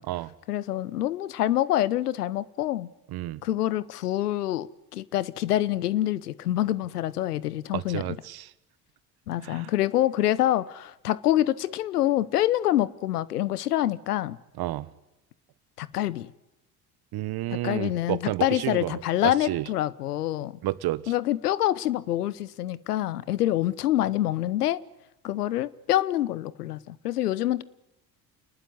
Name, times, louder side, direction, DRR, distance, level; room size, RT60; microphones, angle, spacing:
voice 1, 0.5-2.9 3.4-8.2 9.3-14.4 15.8-16.3 17.5-20.5 21.1-24.8 25.2-27.6, left 13 dB, 85° left, 1.0 m, -26 dB
voice 2, 7.7-8.5 9.4-9.7 14.6-14.9 17.1-18.9 19.2-19.6 20.6-21.1, right 16 dB, 55° right, 1.4 m, -30 dB
28.5 x 20.0 x 9.5 m
hypercardioid pair, 60°, 45 cm